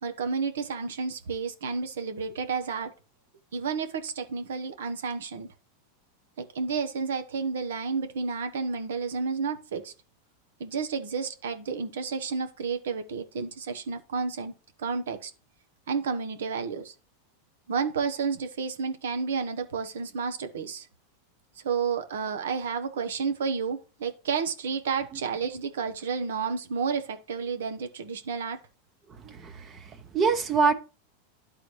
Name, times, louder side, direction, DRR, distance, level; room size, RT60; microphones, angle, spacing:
voice 1, 0.0-2.9 3.5-5.5 6.4-9.9 10.6-14.5 14.8-15.3 15.9-16.9 17.7-20.9 21.6-28.6, right 5 dB, 85° right, 1.0 m, -31 dB
voice 2, 29.2-30.7, right 4 dB, 30° right, 0.8 m, -25 dB
11.0 x 4.1 x 3.2 m
supercardioid pair, 125°, 0 cm